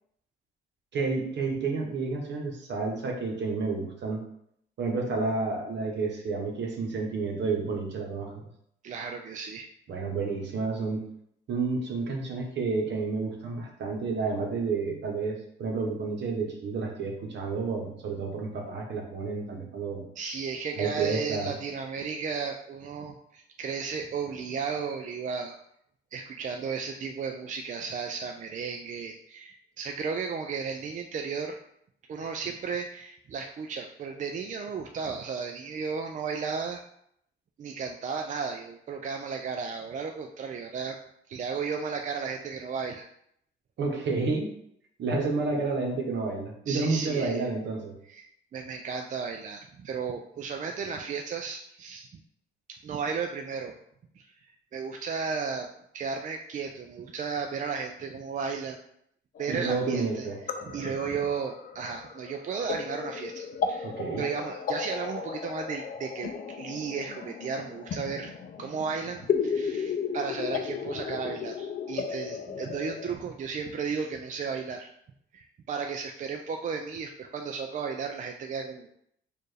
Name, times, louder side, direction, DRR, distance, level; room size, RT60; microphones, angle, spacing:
voice 1, 0.9-4.2 4.8-8.4 9.9-11.1 11.5-20.0 20.7-21.5 43.8-44.5 45.0-47.9 59.5-60.4 63.8-64.2, right 4 dB, 65° right, 1 dB, 1.0 m, -30 dB
voice 2, 8.8-9.7 20.2-25.6 26.1-31.6 32.1-36.8 37.6-41.0 41.3-43.1 46.7-47.5 48.1-52.1 52.7-53.8 54.2-54.3 54.7-55.7 55.9-58.8 59.4-60.3 60.6-66.3 66.6-68.3 68.6-74.9 75.3-78.9, right 5 dB, 40° right, 4 dB, 0.4 m, -34 dB
sound 1, 59.4-73.1, left 6 dB, 45° left, 0.4 m, -35 dB
4.4 x 2.5 x 3.3 m, 0.72 s
cardioid pair, 90°, 20 cm